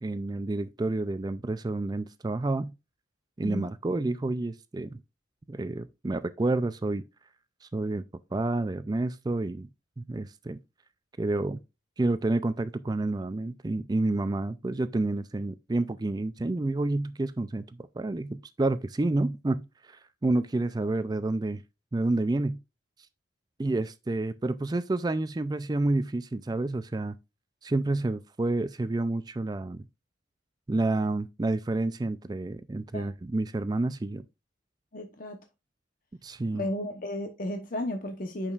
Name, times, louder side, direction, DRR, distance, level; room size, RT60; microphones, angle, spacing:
voice 1, 0.0-2.7 3.4-5.0 5.5-7.0 7.6-8.0 8.3-9.7 10.0-10.6 11.2-11.6 12.0-17.6 18.0-21.6 21.9-22.6 23.6-27.1 27.6-29.8 30.7-34.2 36.2-36.7, right 2 dB, 20° right, 0.3 m, -29 dB
voice 2, 34.9-35.4 36.5-38.5, left 1 dB, 45° left, 0.9 m, -34 dB
8.9 x 6.3 x 2.4 m
head